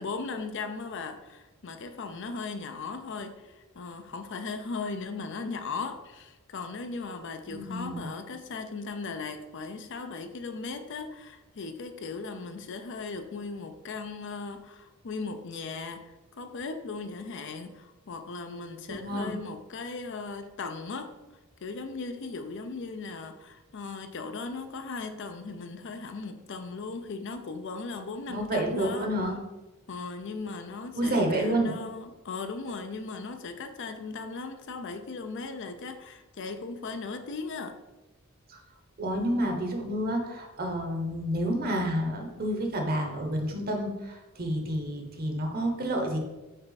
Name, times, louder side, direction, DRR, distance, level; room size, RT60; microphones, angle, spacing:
voice 1, 0.0-21.1 21.6-29.1 29.9-37.8, left 4 dB, 55° left, 7 dB, 0.5 m, -37 dB
voice 2, 7.5-8.1 18.9-19.3 28.3-29.4 31.0-31.7 38.5-38.6 39.0-46.2, right 1 dB, 45° right, 2 dB, 1.0 m, -29 dB
5.5 x 4.5 x 4.0 m, 1.1 s
head